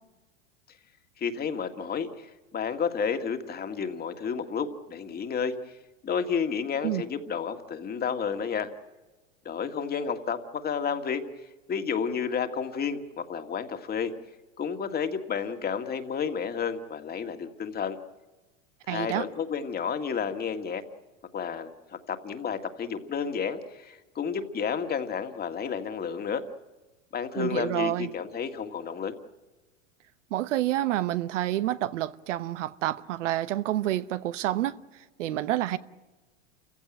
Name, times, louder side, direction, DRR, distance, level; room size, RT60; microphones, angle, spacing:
voice 1, 1.2-5.8 6.0-8.7 9.5-11.2 11.7-14.1 14.6-18.0 18.9-20.8 21.3-21.7 22.1-26.4 27.1-29.1, left 6 dB, 25° left, 2.0 m, -31 dB
voice 2, 18.9-19.3 27.4-28.1 30.3-34.8 35.2-35.8, right 14 dB, 75° right, 1.0 m, -28 dB
29.0 x 16.0 x 8.9 m
hypercardioid pair, 110°, 37 cm